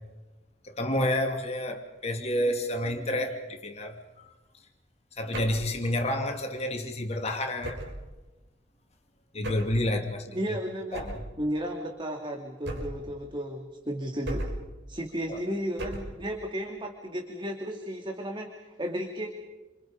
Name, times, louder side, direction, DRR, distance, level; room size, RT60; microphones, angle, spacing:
voice 1, 0.6-4.3 5.2-7.8 9.3-10.4 10.9-11.2 15.3-15.4, left 1 dB, 35° left, 2.8 m, -29 dB
sound 1, 5.3-5.7 7.6-8.1 9.4-9.8 10.9-11.3 12.6-13.1 14.2-14.7 15.8-16.2, right 1 dB, 70° right, 6.3 m, -35 dB
voice 2, 10.3-11.0 11.4-14.5 14.9-19.3, equal, 25° right, 2.5 m, -34 dB
29.5 x 27.0 x 5.2 m
head